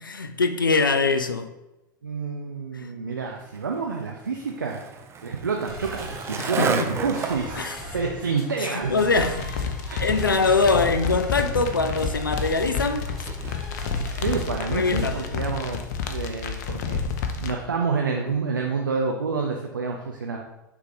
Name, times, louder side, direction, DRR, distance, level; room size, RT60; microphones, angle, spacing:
voice 1, 0.0-1.5 2.7-2.9 6.4-6.9 7.5-7.8 8.6-9.7 10.0-13.1 14.7-15.2, left 3 dB, 80° left, 0.4 m, -23 dB
voice 2, 2.0-4.9 5.2-8.9 9.3-9.4 9.9-10.1 14.1-15.8 16.1-20.4, right 5 dB, 80° right, 0.7 m, -28 dB
Skateboard, 3.4-13.9, right 5 dB, 25° right, 0.7 m, -35 dB
sound 1, 5.7-15.3, equal, 5° left, 2.4 m, -40 dB
sound 2, 9.1-17.5, left 6 dB, 55° left, 0.8 m, -30 dB
6.9 x 3.6 x 4.9 m
figure-of-eight pair, 85°, 11 cm